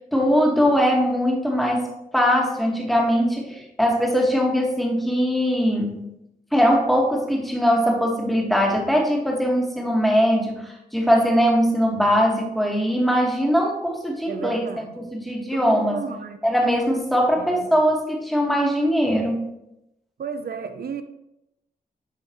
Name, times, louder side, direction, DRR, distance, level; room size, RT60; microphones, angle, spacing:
voice 1, 0.1-1.9 2.1-6.1 6.5-16.1 16.4-19.4, equal, ahead, -1 dB, 1.9 m, -21 dB
voice 2, 14.3-15.0 15.5-16.4 17.4-17.7 20.2-21.0, right 6 dB, 80° right, 9 dB, 0.7 m, -33 dB
9.5 x 5.6 x 3.1 m, 0.85 s
wide cardioid pair, 90°, 16 cm